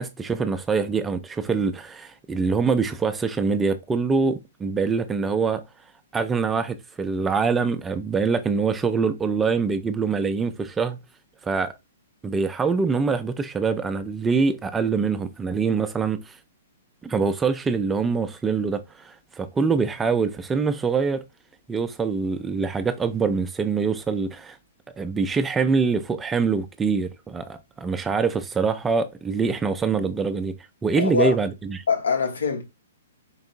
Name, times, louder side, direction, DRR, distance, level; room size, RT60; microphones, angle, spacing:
voice 1, 0.0-5.6 6.1-11.0 11.4-11.7 12.2-16.4 17.0-21.2 21.7-24.6 25.0-30.6 30.8-31.8, right 5 dB, 15° right, 0.4 m, -24 dB
voice 2, 30.9-31.4 31.9-32.6, left 5 dB, 75° left, 1.0 m, -23 dB
4.5 x 2.6 x 2.5 m
figure-of-eight pair, 120°, 0 cm